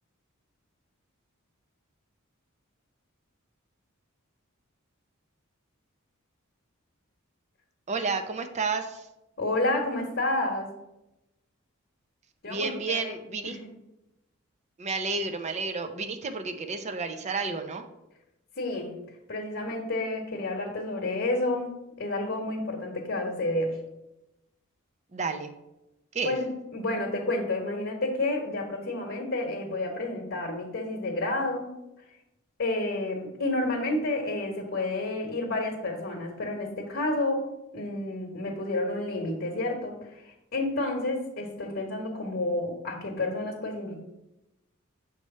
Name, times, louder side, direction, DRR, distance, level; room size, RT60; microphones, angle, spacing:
voice 1, 7.9-9.1 12.5-13.6 14.8-17.8 25.1-25.5 26.1-26.4, right 4 dB, 35° right, 7 dB, 0.6 m, -31 dB
voice 2, 9.4-10.7 12.4-13.1 13.5-13.7 18.6-19.0 19.3-23.8 26.2-31.7 32.6-37.4 37.7-44.0, left 2 dB, 55° left, 0 dB, 1.1 m, -30 dB
6.8 x 3.2 x 5.4 m, 0.93 s
head